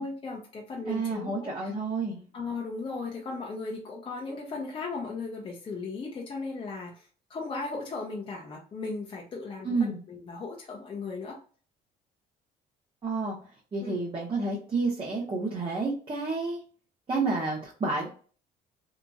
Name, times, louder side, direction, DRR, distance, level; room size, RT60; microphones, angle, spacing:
voice 1, 0.0-1.7 2.3-11.4 13.8-14.0, left 3 dB, 30° left, -1 dB, 0.6 m, -37 dB
voice 2, 0.9-2.2 9.6-10.0 13.0-13.4 13.7-16.6 17.1-18.1, right 3 dB, 30° right, -4 dB, 0.9 m, -30 dB
2.9 x 2.6 x 2.2 m, 0.40 s
cardioid pair, 110°, 17 cm